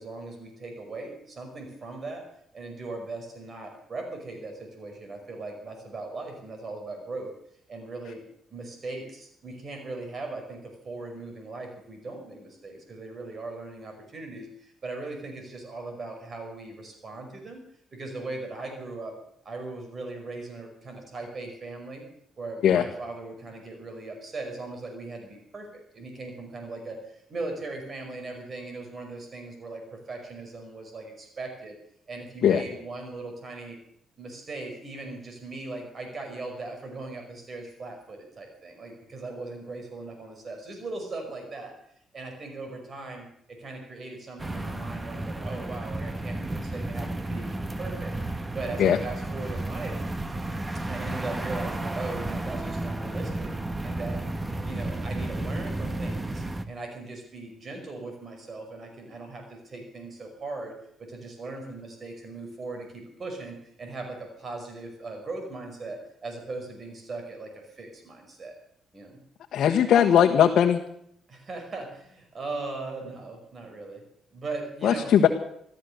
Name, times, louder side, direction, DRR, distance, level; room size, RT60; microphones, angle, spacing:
voice 1, 0.0-2.3 2.5-7.3 7.7-8.2 8.5-17.6 17.9-19.2 19.5-22.0 22.4-31.7 32.1-33.8 34.2-41.7 42.1-47.5 47.8-48.1 48.5-50.0 50.9-53.5 53.8-54.2 54.6-60.7 61.0-68.5 68.9-69.2 71.3-74.0 74.3-75.2, right 3 dB, 40° right, 3 dB, 5.3 m, -39 dB
sound 1, 44.4-56.6, right 2 dB, 20° right, 1.4 m, -32 dB
voice 2, 69.5-70.8 74.8-75.3, left 9 dB, 70° left, 2 dB, 1.3 m, -19 dB
14.0 x 14.0 x 6.8 m, 0.70 s
cardioid pair, 90°, 0 cm